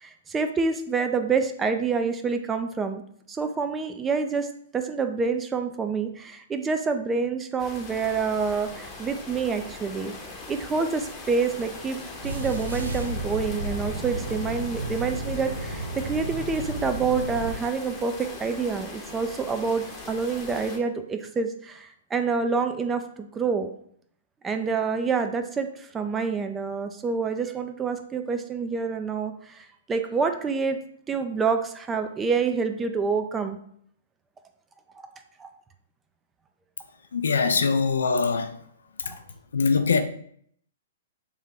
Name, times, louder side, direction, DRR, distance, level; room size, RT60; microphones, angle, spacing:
voice 1, 0.0-3.0 3.3-4.5 4.7-10.1 10.5-23.7 24.4-30.8 31.1-33.6 35.4-35.5 39.0-39.2, right 5 dB, 15° right, 0.4 m, -27 dB
sound 1, 7.6-20.8, left 3 dB, 20° left, 0.8 m, -41 dB
sound 2, 12.2-17.6, right 2 dB, 85° right, 0.6 m, -32 dB
voice 2, 37.1-38.6 39.1-39.2 39.5-40.0, left 5 dB, 75° left, 0.4 m, -23 dB
3.3 x 2.7 x 3.7 m
hypercardioid pair, 120°, 0 cm